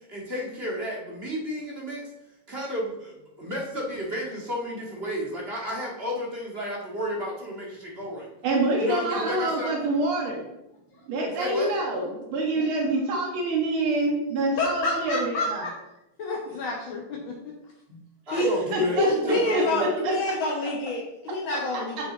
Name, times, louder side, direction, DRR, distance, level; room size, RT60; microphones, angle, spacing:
voice 1, 0.1-2.1 2.5-8.3 8.8-9.7 11.3-11.7 18.3-19.9, equal, 30° right, -3 dB, 2.1 m, -32 dB
voice 2, 8.4-10.4 11.1-15.7 17.9-18.0 18.3-19.1 19.5-20.2, right 2 dB, 80° right, -1 dB, 2.4 m, -26 dB
voice 3, 14.6-15.7 16.2-17.3 18.3-18.5 19.0-22.1, left 2 dB, 70° left, -2 dB, 2.0 m, -28 dB
10.0 x 6.1 x 3.9 m, 0.90 s
omnidirectional pair, 2.3 m